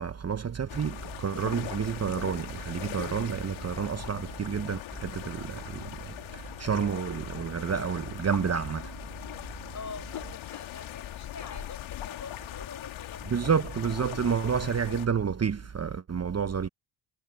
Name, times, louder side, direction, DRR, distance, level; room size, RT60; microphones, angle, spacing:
voice 1, 0.0-8.9 13.3-16.7, right 7 dB, 30° right, 1.1 m, -30 dB
sound 1, 0.7-15.1, left 13 dB, 70° left, 2.8 m, -40 dB
voice 2, 9.7-13.5, left 5 dB, 35° left, 7.5 m, -45 dB
supercardioid pair, 65°, 47 cm